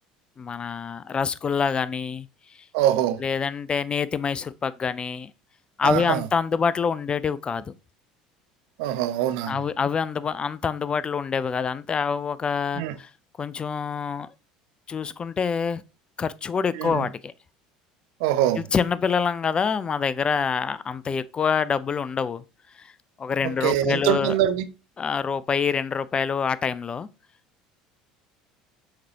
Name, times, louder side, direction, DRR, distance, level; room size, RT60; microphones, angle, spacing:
voice 1, 0.4-2.3 3.2-5.3 5.8-7.7 9.5-13.1 13.4-14.3 14.9-15.8 16.2-17.3 18.6-22.4 23.2-24.3 25.0-27.1, left 6 dB, 25° left, 0.4 m, -26 dB
voice 2, 2.7-3.2 5.8-6.3 8.8-9.6 12.8-12.9 16.7-17.1 18.2-18.6 23.4-24.7, right 12 dB, 65° right, 0.4 m, -24 dB
5.8 x 3.2 x 2.8 m
figure-of-eight pair, 70°, 4 cm